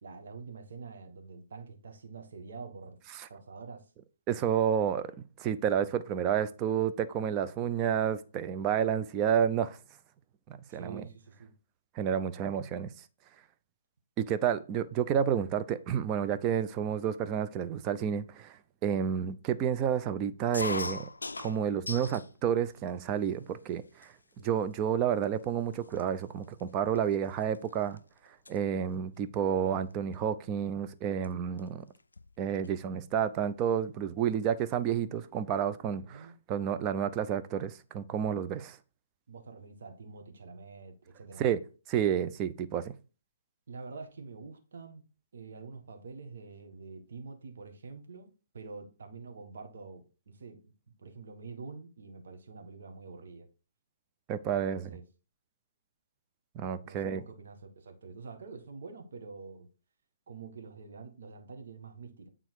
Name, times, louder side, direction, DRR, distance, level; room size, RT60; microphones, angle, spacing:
voice 1, 0.0-3.0 3.3-3.9 10.7-11.5 36.0-36.3 39.3-41.6 43.7-45.0 45.3-50.7 51.0-53.5 54.6-55.0 56.8-59.7 60.3-62.3, right 4 dB, 60° right, 1.5 m, -46 dB
voice 2, 4.3-5.0 5.4-9.8 10.5-11.0 12.0-12.9 14.2-18.6 18.8-21.1 21.4-24.1 24.4-28.0 28.5-31.8 32.4-38.8 41.4-41.6 41.9-42.9 54.3-54.9 56.6-57.2, right 8 dB, 25° right, 0.6 m, -30 dB
sound 1, 20.5-22.3 22.7-23.4 24.0-24.1 24.4-24.8 25.4-25.5 25.7-28.0 28.3-28.6 29.9-30.1 31.2-31.3 31.6-31.7 32.0-32.8, left 3 dB, 80° left, 0.3 m, -40 dB
8.9 x 3.7 x 4.7 m
figure-of-eight pair, 130°, 0 cm